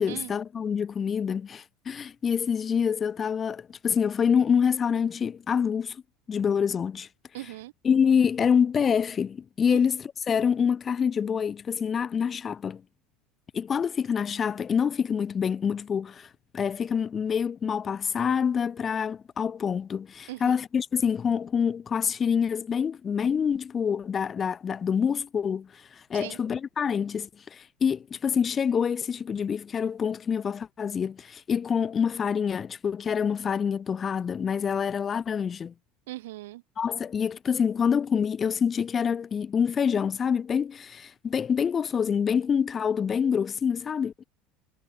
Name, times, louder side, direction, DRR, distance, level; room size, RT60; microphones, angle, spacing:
voice 1, 0.0-6.0 6.3-7.1 7.8-12.8 13.5-16.3 16.5-35.7 36.8-44.2, left 7 dB, 30° left, 0.3 m, -26 dB
voice 2, 7.3-7.7 9.7-9.8 20.3-20.6 26.1-26.4 36.1-36.6, right 17 dB, 90° right, 0.6 m, -39 dB
supercardioid pair, 115°, 0 cm